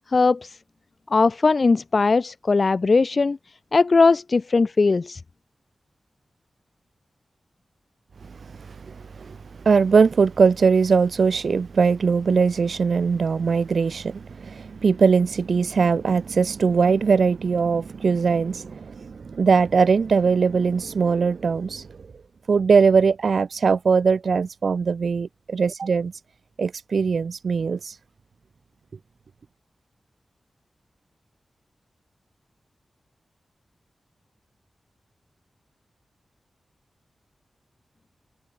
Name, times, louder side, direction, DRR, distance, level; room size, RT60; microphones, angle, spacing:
voice 1, 0.1-0.5 1.1-3.4 3.7-5.2, left 4 dB, 50° left, 1.7 m, -19 dB
voice 2, 8.2-22.1 22.5-26.1 26.6-28.0, right 5 dB, 70° right, 3.0 m, -21 dB
wide cardioid pair, 105°, 0 cm